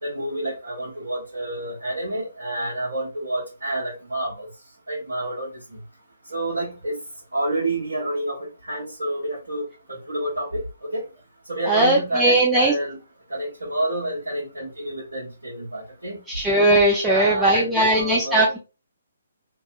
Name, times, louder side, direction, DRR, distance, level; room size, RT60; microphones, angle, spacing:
voice 1, 0.0-4.5 4.9-5.5 6.3-7.0 7.3-10.6 10.9-11.0 11.5-13.0 13.3-16.2 17.0-18.5, right 1 dB, 70° right, -6 dB, 0.9 m, -28 dB
voice 2, 11.7-12.7 16.4-18.6, right 1 dB, 5° right, -5 dB, 0.4 m, -19 dB
2.7 x 2.3 x 2.4 m, 0.31 s
figure-of-eight pair, 135°, 0 cm